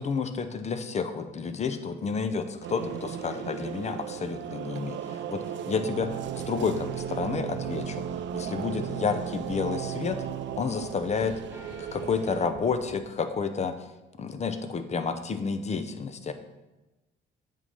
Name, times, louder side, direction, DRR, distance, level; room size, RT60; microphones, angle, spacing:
voice 1, 0.0-8.0 8.3-10.2 10.6-11.4 11.8-13.7 14.2-16.3, left 5 dB, 35° left, 9 dB, 0.7 m, -30 dB
sound 1, 2.3-6.4 6.7-7.6 8.1-8.6 8.9-11.2 11.5-13.1, right 5 dB, 10° right, 0.9 m, -48 dB
sound 2, 2.6-12.5, right 10 dB, 70° right, 0.5 m, -35 dB
sound 3, 6.0-13.0, left 3 dB, 75° left, 1.6 m, -48 dB
8.1 x 3.8 x 5.5 m, 1.1 s
cardioid pair, 90°, 20 cm